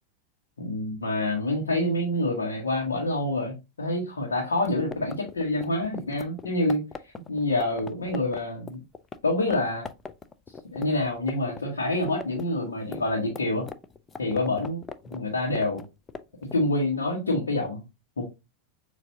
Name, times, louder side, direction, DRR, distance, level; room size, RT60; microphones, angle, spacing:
voice 1, 0.6-8.8 9.2-9.9 10.7-13.7 14.2-14.8 15.0-15.8 16.5-17.8 18.2-18.3, left 2 dB, 70° left, -2 dB, 1.1 m, -27 dB
sound 1, 4.5-9.2 9.5-9.6 9.8-11.6 11.9-16.6, left 5 dB, 15° left, 0.4 m, -40 dB
6.7 x 2.6 x 2.7 m, 0.25 s
figure-of-eight pair, 90°, 0 cm